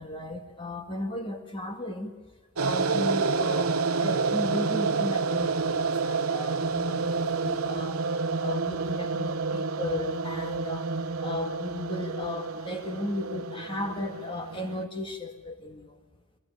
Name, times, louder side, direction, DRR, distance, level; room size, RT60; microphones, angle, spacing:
voice 1, 0.0-2.1 2.6-8.0 8.4-10.9 11.2-16.0, left 1 dB, 25° left, 5 dB, 1.9 m, -35 dB
sound 1, 2.6-14.8, right 4 dB, 85° right, 0.9 m, -29 dB
21.5 x 16.5 x 9.8 m, 1.3 s
head